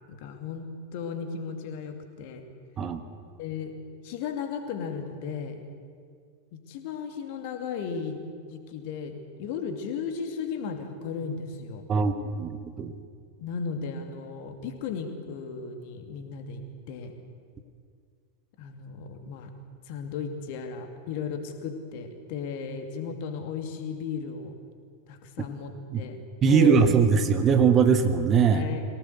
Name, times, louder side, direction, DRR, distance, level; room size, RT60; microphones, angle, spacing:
voice 1, 0.1-2.4 3.4-3.7 4.0-5.6 6.5-11.8 13.4-17.1 18.6-19.5 19.9-24.5 25.1-26.8 28.5-28.8, left 6 dB, 45° left, 6 dB, 2.5 m, -35 dB
voice 2, 12.4-12.9 25.9-26.0 26.4-28.6, right 6 dB, 25° right, 9 dB, 1.4 m, -21 dB
23.0 x 18.0 x 8.1 m, 2.1 s
figure-of-eight pair, 90°, 0 cm